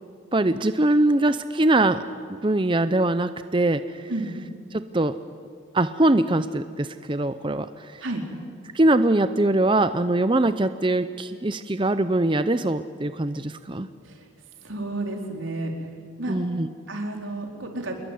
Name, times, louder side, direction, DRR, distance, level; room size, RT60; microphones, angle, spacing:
voice 1, 0.3-2.0 2.4-4.0 4.7-5.2 5.7-7.7 8.7-13.9 16.3-16.7, right 2 dB, 25° right, 11 dB, 0.7 m, -22 dB
voice 2, 14.6-15.7 16.2-16.4 16.9-17.9, right 2 dB, 90° right, 2 dB, 4.4 m, -31 dB
27.0 x 22.0 x 9.4 m, 2.1 s
head